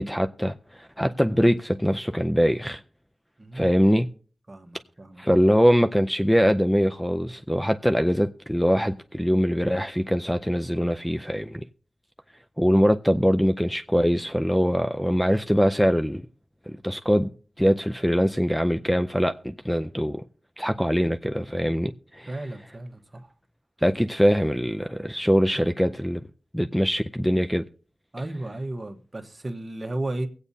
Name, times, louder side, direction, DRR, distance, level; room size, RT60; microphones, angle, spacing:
voice 1, 0.0-2.8 3.5-4.1 5.2-11.6 12.6-16.2 16.7-17.3 17.6-20.2 20.6-22.3 23.8-26.2 26.5-27.6, equal, 5° left, 0.5 m, -23 dB
voice 2, 3.4-3.7 4.5-5.2 22.3-23.3 28.1-30.3, right 2 dB, 35° right, 1.2 m, -34 dB
23.5 x 8.3 x 2.7 m
wide cardioid pair, 70°, 0 cm